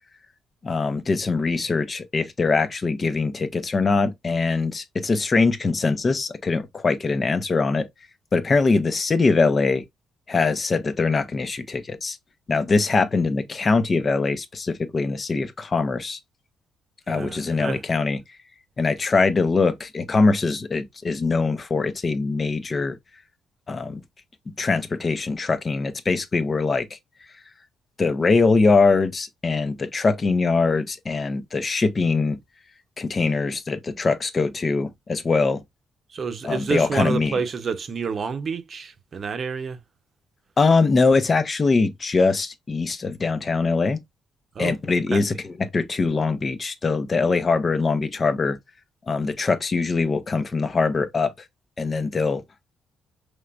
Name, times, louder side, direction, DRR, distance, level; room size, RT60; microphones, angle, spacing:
voice 1, 0.6-7.9 8.3-9.8 10.3-12.2 12.5-16.2 17.1-18.2 18.8-23.0 23.7-24.0 24.6-26.9 28.0-32.4 33.0-35.6 36.4-37.4 40.6-44.0 44.6-48.6 49.1-51.3 51.8-52.4, left 4 dB, 35° left, 0.8 m, -22 dB
voice 2, 17.1-17.8 36.1-39.8 44.5-44.7 45.1-45.2, right 5 dB, 45° right, 0.8 m, -29 dB
5.5 x 3.3 x 2.4 m
cardioid pair, 90°, 0 cm